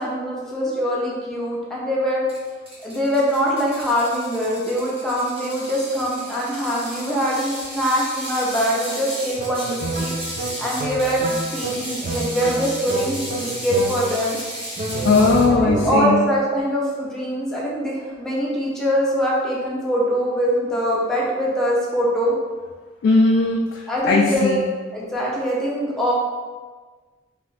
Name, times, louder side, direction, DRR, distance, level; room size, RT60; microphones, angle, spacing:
voice 1, 0.0-2.2 2.8-10.1 10.6-14.4 15.6-22.3 23.9-24.5 24.9-26.1, equal, 5° left, -6 dB, 0.6 m, -23 dB
Ratchet pawl, 2.3-15.5, equal, 30° right, 0.8 m, -34 dB
sound 1, 9.4-14.3 14.8-16.3, right 2 dB, 45° right, 0.3 m, -29 dB
voice 2, 15.0-16.2 23.0-24.6, left 3 dB, 65° left, -1 dB, 0.3 m, -18 dB
3.0 x 2.4 x 3.2 m, 1.4 s
head